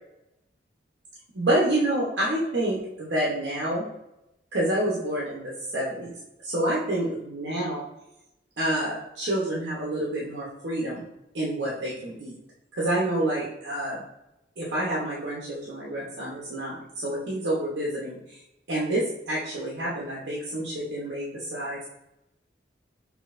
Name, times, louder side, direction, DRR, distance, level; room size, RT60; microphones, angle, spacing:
voice 1, 1.3-3.8 4.5-6.1 6.4-7.8 8.6-11.0 11.3-12.3 12.7-14.0 14.6-18.4 18.7-21.9, right 1 dB, 70° right, -5 dB, 1.0 m, -28 dB
6.2 x 2.8 x 2.5 m, 0.87 s
head